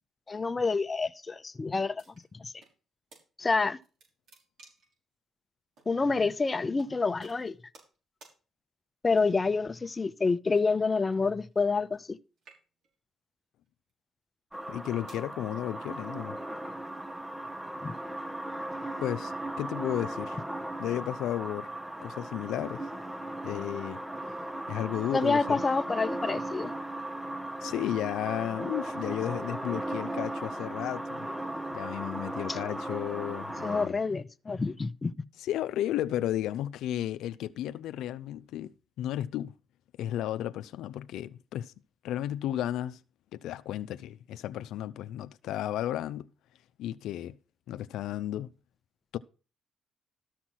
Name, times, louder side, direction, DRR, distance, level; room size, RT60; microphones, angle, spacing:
voice 1, 0.3-2.0 2.4-2.5 3.4-3.8 5.9-7.6 9.0-12.2 17.8-17.9 25.1-26.7 32.5-32.6 33.6-35.1, left 4 dB, 25° left, 0.8 m, -28 dB
sound 1, 2.0-2.7 3.1-3.2 3.6-5.0 5.8-5.9 6.8-6.9 7.2-8.0 8.2-8.4 9.1-9.5 10.5-12.1 12.4-13.0 13.7-13.9 14.6-15.3, right 3 dB, 70° right, 5.9 m, -57 dB
sound 2, 14.5-33.9, right 1 dB, 10° right, 1.0 m, -37 dB
voice 2, 14.7-16.4 19.0-20.4 20.8-21.7 22.0-22.8 23.4-24.0 24.7-25.6 27.6-31.3 31.7-34.0 35.4-39.5 40.0-41.7 42.0-43.0 43.3-46.3 46.8-47.3 47.7-48.5 49.1-49.2, left 12 dB, 85° left, 0.5 m, -33 dB
13.5 x 5.8 x 6.2 m
cardioid pair, 90°, 0 cm